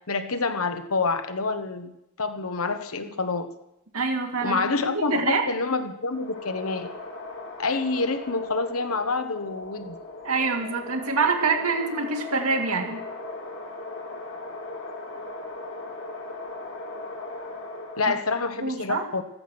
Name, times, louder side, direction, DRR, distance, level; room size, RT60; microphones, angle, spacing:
voice 1, 0.0-1.9 2.2-3.5 4.4-6.9 7.6-10.0 18.0-19.2, left 3 dB, 75° left, 8 dB, 1.3 m, -27 dB
voice 2, 3.9-5.4 10.2-13.0 18.6-19.0, right 4 dB, 90° right, 3 dB, 2.4 m, -26 dB
sound 1, 6.0-18.5, left 2 dB, 60° left, 3.7 m, -38 dB
15.0 x 13.5 x 6.2 m, 0.84 s
head